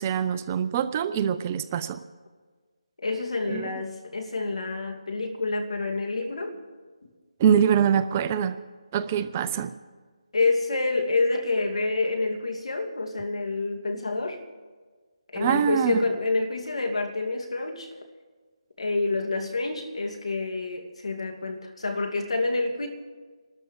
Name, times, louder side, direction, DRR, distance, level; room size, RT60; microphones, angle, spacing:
voice 1, 0.0-2.0 3.5-3.7 7.4-8.6 8.9-9.7 15.4-16.0, right 8 dB, 20° right, 0.4 m, -24 dB
voice 2, 3.0-6.5 10.3-14.4 15.3-17.9 18.8-22.9, left 3 dB, 75° left, 2.2 m, -28 dB
27.0 x 13.0 x 3.1 m
figure-of-eight pair, 165°, 3 cm